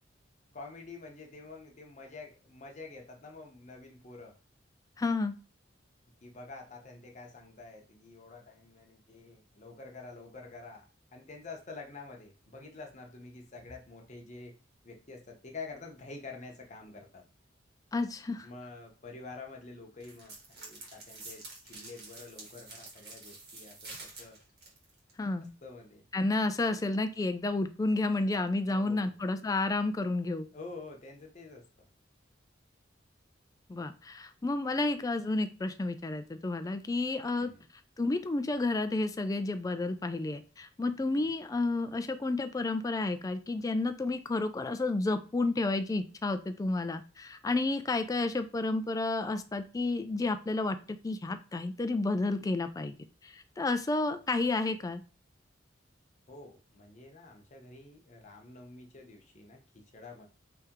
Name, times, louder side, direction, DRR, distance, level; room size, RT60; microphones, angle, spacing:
voice 1, 0.5-4.4 6.2-14.6 14.8-17.2 18.4-24.4 25.6-26.1 26.6-26.8 28.7-29.1 30.5-31.9 37.3-37.7 41.1-41.3 56.3-60.3, left 3 dB, 40° left, 2 dB, 0.8 m, -48 dB
voice 2, 5.0-5.4 17.9-18.5 25.2-25.5 26.1-30.5 33.7-37.5 38.0-53.0 53.2-55.0, left 2 dB, 20° left, 9 dB, 0.3 m, -31 dB
sound 1, 20.0-25.1, right 3 dB, 60° right, 1.4 m, -48 dB
3.3 x 2.9 x 3.5 m, 0.36 s
head